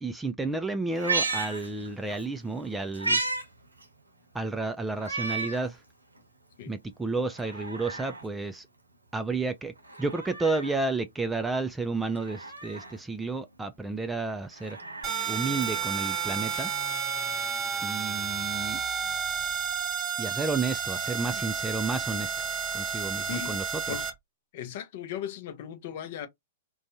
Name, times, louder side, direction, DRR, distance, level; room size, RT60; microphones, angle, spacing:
voice 1, 0.0-3.2 4.3-5.8 6.7-8.7 9.1-9.7 10.0-14.8 15.3-16.7 17.8-18.8 20.2-22.5 22.7-23.9, right 3 dB, 10° right, 0.3 m, -31 dB
Meow, 0.9-2.2 2.6-3.4 3.8-3.9 5.0-5.7 6.2-6.3 7.2-8.2 9.8-10.8 12.1-13.0 14.4-16.1 17.3-17.4, right 3 dB, 90° right, 0.8 m, -33 dB
sound 1, 15.0-24.1, right 7 dB, 30° right, 0.8 m, -31 dB
voice 2, 23.2-23.6 23.9-24.1 24.5-26.3, left 10 dB, 50° left, 0.6 m, -37 dB
2.5 x 2.2 x 2.7 m
figure-of-eight pair, 110°, 0 cm